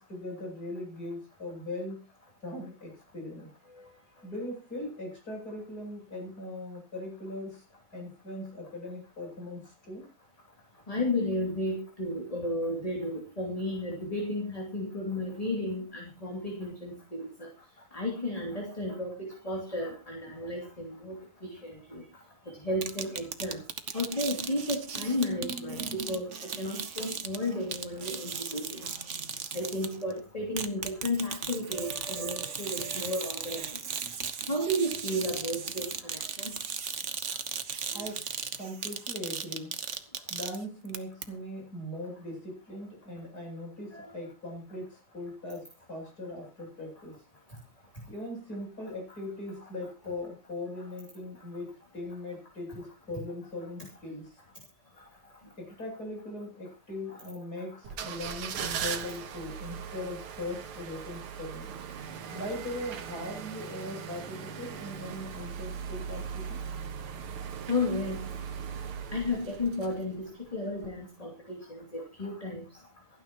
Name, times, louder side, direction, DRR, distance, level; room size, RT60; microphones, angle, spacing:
voice 1, 0.0-2.0 2.4-3.5 4.2-7.6 7.9-10.1 37.9-38.3 38.6-39.8 40.3-47.2 48.1-54.4 55.6-61.7 62.3-66.6, left 1 dB, 45° left, -1 dB, 8.5 m, -40 dB
voice 2, 10.9-17.5 17.9-21.2 21.4-22.0 22.6-23.6 23.9-26.3 26.6-29.0 29.5-33.7 34.5-36.5 37.9-38.1 43.9-44.1 57.1-57.2 67.7-68.2 69.1-72.6, left 1 dB, 15° left, 0 dB, 2.7 m, -33 dB
sound 1, 22.8-30.1 30.6-41.0 41.2-41.3, right 6 dB, 45° right, 1.1 m, -37 dB
sound 2, 57.8-70.3 70.8-70.9, right 7 dB, 75° right, 2.2 m, -39 dB
27.5 x 9.9 x 3.0 m, 0.30 s
omnidirectional pair, 2.4 m